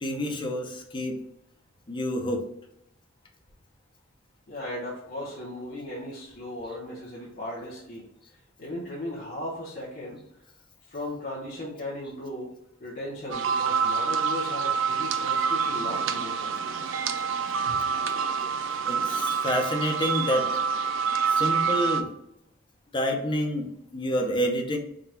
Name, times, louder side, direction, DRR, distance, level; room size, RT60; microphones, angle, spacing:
voice 1, 0.0-1.2 1.9-2.4 18.8-20.5 21.3-22.1 22.9-24.8, equal, 25° left, 2 dB, 0.6 m, -28 dB
voice 2, 4.5-8.1 8.6-10.5 10.9-12.5 12.8-16.6 17.7-17.8 21.2-21.3, left 1 dB, 50° left, -6 dB, 0.9 m, -37 dB
sound 1, 13.3-22.0, right 6 dB, 70° right, 0.4 m, -27 dB
3.7 x 2.3 x 4.2 m, 0.79 s
head